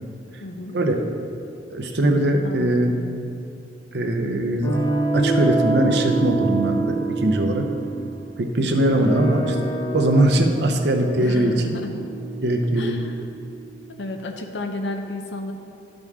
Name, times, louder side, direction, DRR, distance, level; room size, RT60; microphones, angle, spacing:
voice 1, 0.4-0.8 2.4-3.0 9.0-9.2 11.2-12.1 12.8-13.2 14.0-15.5, left 2 dB, 75° left, 4 dB, 0.7 m, -32 dB
voice 2, 1.7-3.0 3.9-4.8 5.1-7.7 8.4-9.5 9.9-11.5 12.4-13.0, right 1 dB, 65° right, 3 dB, 0.7 m, -21 dB
sound 1, 4.6-13.8, right 2 dB, 20° left, 0.9 m, -27 dB
11.0 x 5.2 x 3.6 m, 2.6 s
head